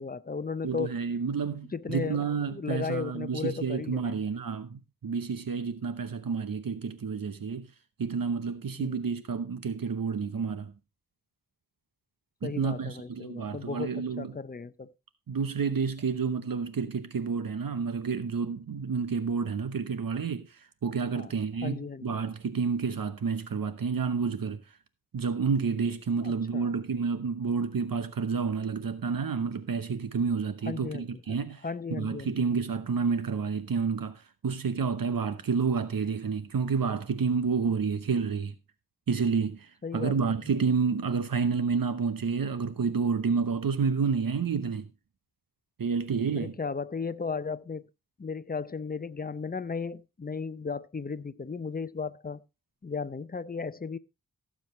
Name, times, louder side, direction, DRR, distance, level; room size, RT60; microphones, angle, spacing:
voice 1, 0.0-1.0 1.7-4.2 8.8-9.0 12.4-14.9 21.1-21.3 21.6-22.2 26.2-26.8 30.6-31.4 31.6-32.5 39.8-40.4 46.4-47.9 48.2-52.4 52.8-54.0, left 5 dB, 25° left, 0.6 m, -35 dB
voice 2, 0.6-7.7 8.0-10.7 12.4-14.3 15.3-24.6 25.1-31.6 31.9-38.5 39.1-44.9 45.8-46.6, right 5 dB, 70° right, 0.9 m, -29 dB
16.5 x 7.5 x 3.1 m
wide cardioid pair, 70°, 35 cm